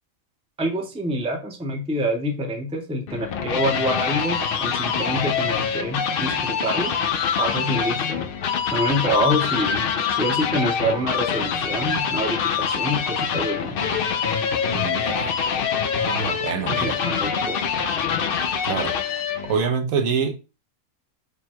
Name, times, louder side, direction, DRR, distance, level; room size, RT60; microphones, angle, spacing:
voice 1, 0.6-6.9 7.3-8.2 8.7-9.8 10.1-13.8 16.7-17.6, equal, 5° right, 0.5 m, -26 dB
sound 1, 3.1-19.6, left 7 dB, 80° left, 0.5 m, -25 dB
voice 2, 14.7-15.3 16.0-17.0 18.6-18.9 19.4-20.3, right 6 dB, 75° right, 1.1 m, -26 dB
4.8 x 2.2 x 4.3 m
omnidirectional pair, 1.5 m